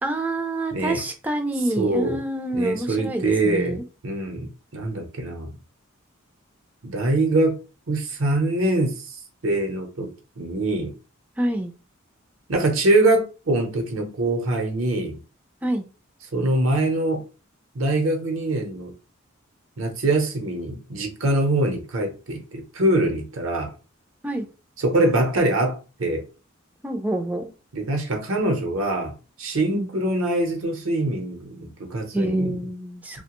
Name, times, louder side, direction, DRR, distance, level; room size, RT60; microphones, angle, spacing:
voice 1, 0.0-3.8 11.4-11.7 15.6-15.8 24.2-24.5 26.8-27.5 29.7-29.9 32.1-33.2, right 1 dB, 10° right, 0.4 m, -27 dB
voice 2, 0.7-1.0 1.8-2.2 2.5-5.5 6.8-7.6 7.9-10.9 12.5-15.2 16.3-17.2 17.7-18.9 19.8-23.7 24.8-26.2 27.7-29.1 29.4-32.6, right 2 dB, 70° right, 0.8 m, -24 dB
2.8 x 2.2 x 2.9 m
head